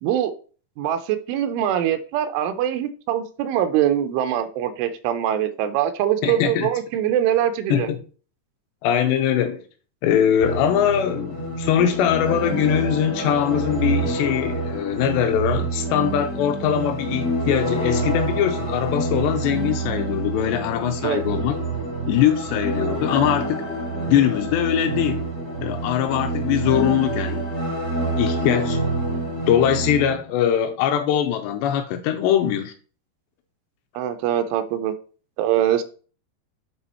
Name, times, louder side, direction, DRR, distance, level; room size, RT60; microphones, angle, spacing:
voice 1, 0.0-0.3 0.8-7.9 21.0-21.2 34.0-34.9 35.4-35.8, right 10 dB, 85° right, 3.1 m, -23 dB
voice 2, 6.2-6.7 7.7-8.0 8.8-9.6 10.0-21.6 22.1-23.6 24.1-25.3 25.6-27.5 28.2-28.8 29.5-32.7, left 9 dB, 85° left, 2.5 m, -22 dB
sound 1, 10.4-30.1, right 2 dB, 65° left, 0.7 m, -27 dB
9.4 x 3.4 x 4.3 m
omnidirectional pair, 5.4 m